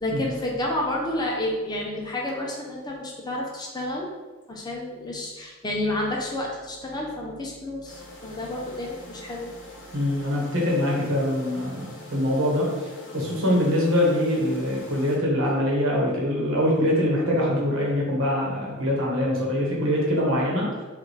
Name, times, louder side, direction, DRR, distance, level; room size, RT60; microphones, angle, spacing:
voice 1, 0.0-4.1 4.5-9.5, left 1 dB, 20° left, -2 dB, 0.5 m, -30 dB
sound 1, 7.8-15.2, left 1 dB, 55° left, 1.0 m, -44 dB
voice 2, 9.9-12.7 13.1-20.7, left 1 dB, 60° right, -3 dB, 1.2 m, -23 dB
5.2 x 2.5 x 3.1 m, 1.2 s
head